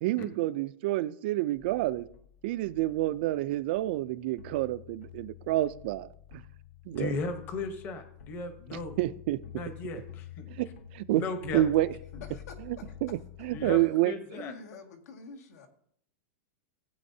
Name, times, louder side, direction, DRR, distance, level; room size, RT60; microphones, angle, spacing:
voice 1, 0.0-2.1 2.4-6.1 6.9-7.1 9.0-9.4 10.5-10.7 10.9-11.2 11.5-11.9 12.7-14.1, right 15 dB, 40° right, 0.3 m, -28 dB
sound 1, 1.6-13.8, left 11 dB, 65° left, 0.9 m, -48 dB
voice 2, 6.9-9.0 9.6-10.6 11.1-11.6 13.5-14.5, left 4 dB, 25° left, 0.9 m, -36 dB
voice 3, 12.3-13.0 14.2-15.7, left 4 dB, 80° left, 1.9 m, -47 dB
16.0 x 8.4 x 2.7 m
supercardioid pair, 175°, 8 cm